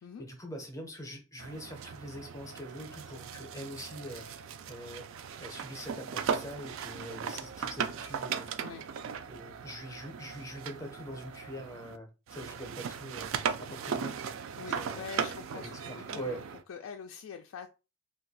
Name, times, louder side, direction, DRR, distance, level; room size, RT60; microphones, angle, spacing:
voice 1, 0.2-4.4 4.7-5.1 5.4-8.5 9.3-13.3 13.6-14.1 14.6-15.1 15.5-16.4, equal, 15° left, 0.6 m, -43 dB
sound 1, 1.4-12.0 12.3-16.6, right 6 dB, 60° right, 0.3 m, -38 dB
voice 2, 14.6-16.4 16.7-17.7, left 7 dB, 65° left, 0.3 m, -44 dB
2.5 x 2.3 x 4.0 m
head